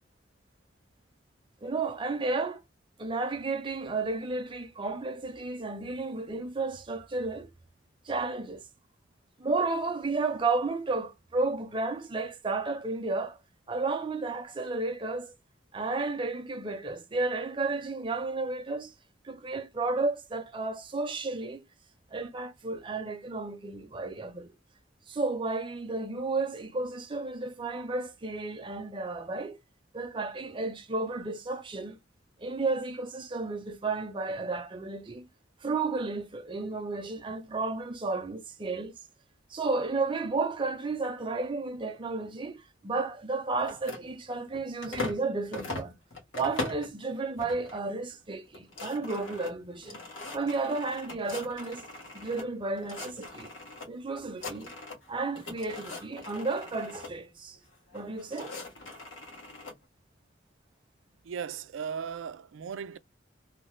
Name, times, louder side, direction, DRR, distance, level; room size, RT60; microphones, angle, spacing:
voice 1, 1.6-2.6 3.0-7.5 8.1-8.6 9.4-13.4 13.7-15.4 15.7-18.9 19.2-21.6 22.1-24.5 25.1-29.6 29.9-32.0 32.4-35.2 35.6-38.9 39.5-45.9 46.3-50.0 50.3-51.8 52.1-53.5 53.9-54.7 55.1-57.6 57.9-58.5, right 3 dB, 25° right, 0.5 m, -32 dB
sound 1, 43.6-45.2 45.5-46.9 47.4-47.8 48.1-48.2 48.5-52.5 52.8-53.9 54.2-55.1 55.4-57.1 57.9-59.7, left 2 dB, 85° left, 1.4 m, -40 dB
voice 2, 61.2-63.0, right 7 dB, 85° right, 0.4 m, -37 dB
3.2 x 2.1 x 3.1 m
head